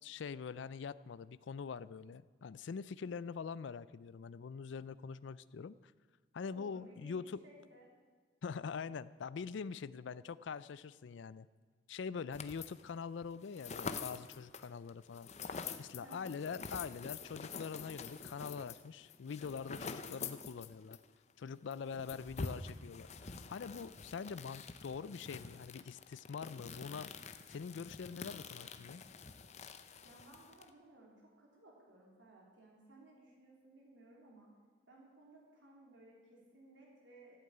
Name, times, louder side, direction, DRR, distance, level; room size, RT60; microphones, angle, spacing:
voice 1, 0.0-5.9 6.3-7.4 8.4-11.5 11.9-21.0 21.4-27.1 27.5-29.0, left 5 dB, 75° left, 17 dB, 0.4 m, -44 dB
voice 2, 6.5-7.9 9.7-10.0 12.1-12.4 16.0-16.3 30.0-34.5 34.9-37.4, right 2 dB, 80° right, -2 dB, 3.4 m, -60 dB
sound 1, 12.3-12.9 13.2-21.0 21.3-21.4 21.7-30.7, left 5 dB, 35° left, 0.7 m, -47 dB
14.5 x 8.6 x 8.6 m, 1.5 s
head